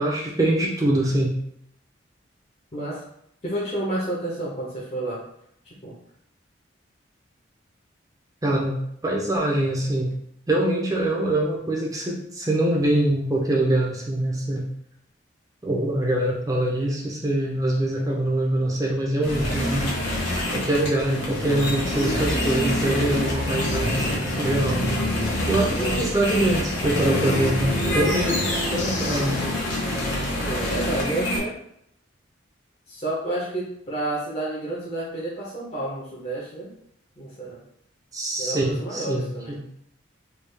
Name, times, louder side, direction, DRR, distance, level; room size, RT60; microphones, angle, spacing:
voice 1, 0.0-1.3 8.4-10.1 10.5-14.7 15.6-19.9 20.5-25.0 25.5-29.6 38.1-39.6, right 1 dB, 20° right, -2 dB, 0.5 m, -24 dB
voice 2, 2.7-3.0 3.4-5.2 5.8-5.9 25.7-26.1 30.4-31.5 32.9-36.7 37.2-37.6 38.4-39.5, right 1 dB, 35° left, -7 dB, 0.7 m, -30 dB
sound 1, 19.2-31.4, left 1 dB, 85° left, 1.1 m, -26 dB
3.4 x 2.3 x 3.3 m, 0.73 s
head